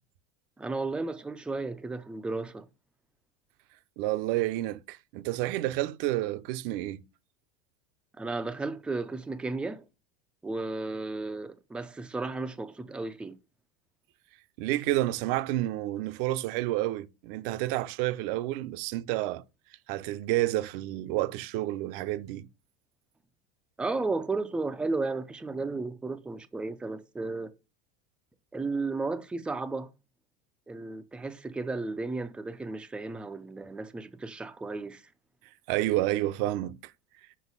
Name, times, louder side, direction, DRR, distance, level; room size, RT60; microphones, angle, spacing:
voice 1, 0.6-2.7 8.2-9.8 10.4-13.3 23.8-27.5 28.5-29.9 30.7-35.0, right 3 dB, 5° right, 0.4 m, -34 dB
voice 2, 4.0-7.0 14.6-19.4 19.9-22.5 35.7-36.9, right 16 dB, 60° right, 0.7 m, -30 dB
6.2 x 5.2 x 5.4 m
supercardioid pair, 155°, 29 cm